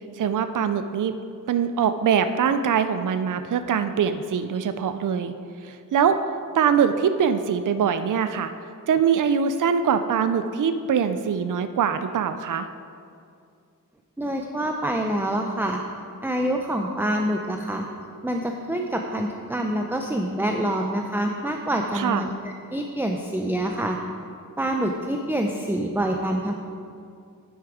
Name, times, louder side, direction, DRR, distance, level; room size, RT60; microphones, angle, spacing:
voice 1, 0.2-1.1 1.5-5.3 5.6-6.2 6.5-8.5 8.9-12.7 21.9-22.2, right 7 dB, 60° right, 10 dB, 0.5 m, -23 dB
voice 2, 14.2-15.8 16.2-17.9 18.2-24.0 24.6-26.5, right 1 dB, 5° right, 2 dB, 0.5 m, -26 dB
9.8 x 8.0 x 4.9 m, 2.4 s
wide cardioid pair, 120°, 36 cm